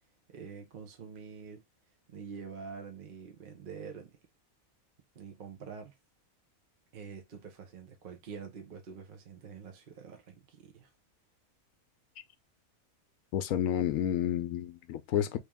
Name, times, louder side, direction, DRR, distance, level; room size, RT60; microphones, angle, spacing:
voice 1, 0.3-1.6 2.1-4.1 5.1-5.9 6.9-10.9, right 6 dB, 45° right, 0.9 m, -46 dB
voice 2, 13.3-15.4, left 10 dB, 75° left, 0.9 m, -30 dB
3.3 x 2.9 x 3.5 m
omnidirectional pair, 1.5 m